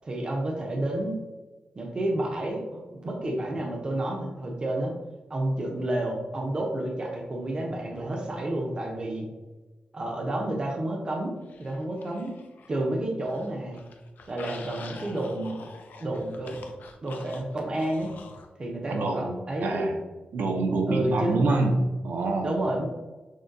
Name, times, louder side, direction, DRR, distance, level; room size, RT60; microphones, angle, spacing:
voice 1, 0.0-1.2 1.8-4.9 5.3-9.3 9.9-12.4 12.7-13.8 14.3-15.6 16.0-16.6 17.0-18.1 18.6-20.0 20.9-21.4 22.4-22.9, right 1 dB, 30° right, 0 dB, 0.6 m, -30 dB
sound 1, 11.5-12.8 13.2-18.5, left 4 dB, 70° left, 0.4 m, -46 dB
voice 2, 18.9-19.3 19.6-19.9 20.3-21.8 22.0-22.5, right 3 dB, 70° right, 2 dB, 0.6 m, -26 dB
6.2 x 2.2 x 2.5 m, 1.2 s
wide cardioid pair, 175°, 3 cm